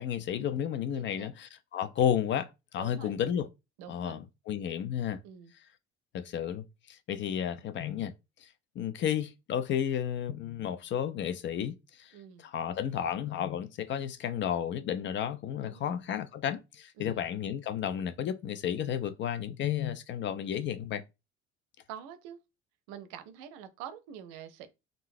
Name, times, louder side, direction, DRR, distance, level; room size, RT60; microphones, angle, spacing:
voice 1, 0.0-3.5 3.9-5.2 6.1-8.1 8.4-21.0, left 9 dB, 35° left, 0.4 m, -32 dB
voice 2, 1.0-1.3 2.8-3.1 3.8-4.2 5.2-5.5 12.1-12.4 15.6-15.9 17.0-17.3 21.9-22.4 22.9-24.7, right 9 dB, 55° right, 0.6 m, -46 dB
3.6 x 2.5 x 2.6 m
figure-of-eight pair, 55°, 35 cm